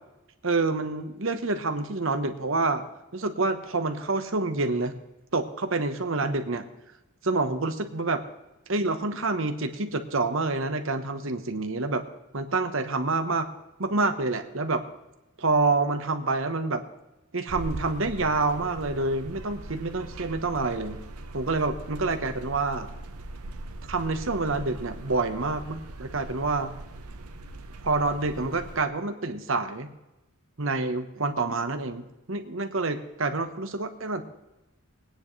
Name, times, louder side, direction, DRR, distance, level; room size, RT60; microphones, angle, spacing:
voice 1, 0.4-2.8 3.1-5.0 5.3-6.6 7.2-8.2 8.7-12.0 12.3-13.5 13.8-14.8 15.4-16.8 17.3-21.0 21.3-22.9 23.8-26.7 27.8-29.9 30.6-34.2, right 3 dB, 60° right, 7 dB, 1.1 m, -27 dB
sound 1, 17.5-28.8, right 2 dB, 85° right, 0.9 m, -40 dB
21.0 x 9.7 x 3.3 m, 0.95 s
head